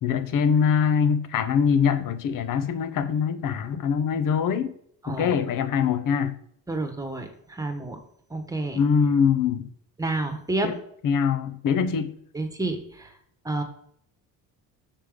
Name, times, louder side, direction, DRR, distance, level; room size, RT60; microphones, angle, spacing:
voice 1, 0.0-4.7 5.1-6.4 8.7-9.7 10.6-10.8 11.0-12.1, left 7 dB, 60° left, 10 dB, 0.9 m, -23 dB
voice 2, 5.0-5.4 6.7-8.0 8.3-8.8 10.0-10.7 11.9-12.0 12.3-13.1 13.4-13.6, right 2 dB, 10° right, 6 dB, 1.3 m, -29 dB
6.8 x 5.6 x 5.1 m, 0.66 s
cardioid pair, 130°, 37 cm